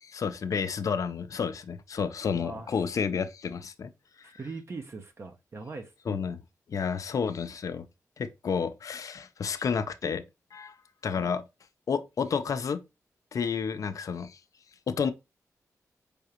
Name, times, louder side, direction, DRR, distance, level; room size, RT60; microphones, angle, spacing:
voice 1, 0.0-3.9 6.1-6.4 6.7-7.9 8.2-10.2 10.5-10.7 11.0-11.4 11.9-12.8 13.3-14.4 14.9-15.1, left 6 dB, 65° left, 0.5 m, -30 dB
voice 2, 2.3-2.7 4.2-6.2 11.2-11.3, right 3 dB, 45° right, 0.7 m, -41 dB
4.8 x 3.4 x 2.8 m
cardioid pair, 70°, 6 cm